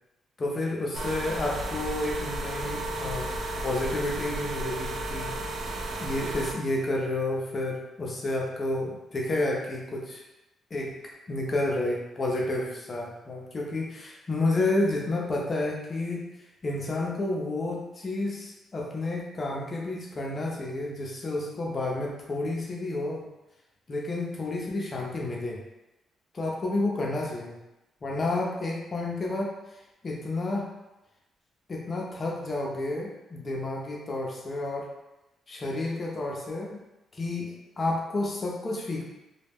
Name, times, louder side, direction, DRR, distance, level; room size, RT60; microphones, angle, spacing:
voice 1, 0.4-3.3 3.6-10.2 10.7-16.3 16.6-23.3 23.9-25.6 26.3-27.6 28.0-29.5 30.0-30.7 31.7-34.9 35.5-36.8 37.1-39.0, left 2 dB, 35° left, -2 dB, 0.5 m, -30 dB
sound 1, 0.9-6.5, right 1 dB, 65° right, 0.3 m, -33 dB
2.2 x 2.0 x 3.4 m, 0.97 s
cardioid pair, 115°, 0 cm